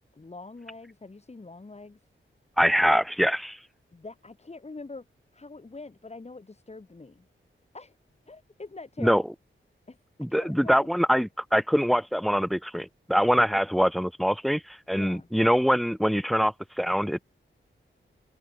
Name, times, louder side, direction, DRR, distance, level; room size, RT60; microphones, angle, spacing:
voice 1, 0.0-2.0 3.9-5.1 5.3-7.3 7.7-8.0 8.3-9.2 9.9-10.0 10.3-10.9 14.9-15.3, left 3 dB, 30° left, 4.8 m, -44 dB
voice 2, 2.6-3.6 9.0-9.2 10.2-17.2, equal, ahead, 0.8 m, -24 dB
wide cardioid pair, 140°, 21 cm